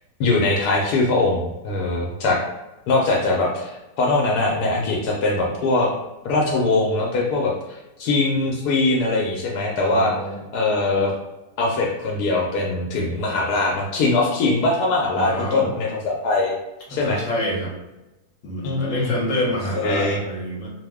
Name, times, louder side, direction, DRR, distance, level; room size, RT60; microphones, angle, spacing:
voice 1, 0.2-2.4 2.9-5.9 6.2-7.5 8.0-10.1 10.5-11.1 11.6-16.5 16.9-17.2 18.6-19.1 19.8-20.2, left 2 dB, 80° left, -1 dB, 1.1 m, -21 dB
voice 2, 9.7-10.4 15.1-15.8 16.9-17.7 18.4-20.7, equal, 60° left, -3 dB, 1.0 m, -27 dB
2.9 x 2.0 x 3.4 m, 0.98 s
omnidirectional pair, 1.7 m